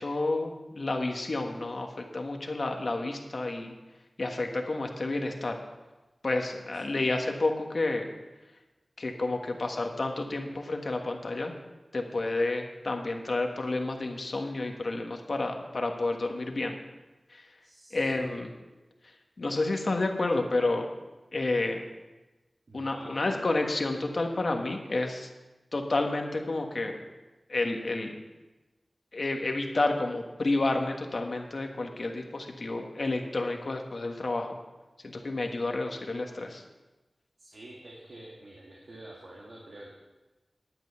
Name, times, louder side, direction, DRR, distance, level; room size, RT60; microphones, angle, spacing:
voice 1, 0.0-3.7 4.2-5.6 6.2-8.1 9.0-11.5 11.9-16.7 17.3-17.4 17.9-18.5 19.4-20.9 21.3-21.8 22.7-25.3 25.7-27.0 27.5-28.1 29.1-34.6 35.0-36.6, left 2 dB, 65° left, 3 dB, 1.4 m, -30 dB
voice 2, 17.6-18.4 22.7-23.4 37.4-39.9, right 1 dB, 75° right, -4 dB, 2.1 m, -47 dB
11.0 x 8.9 x 5.6 m, 1.1 s
wide cardioid pair, 65°, 0 cm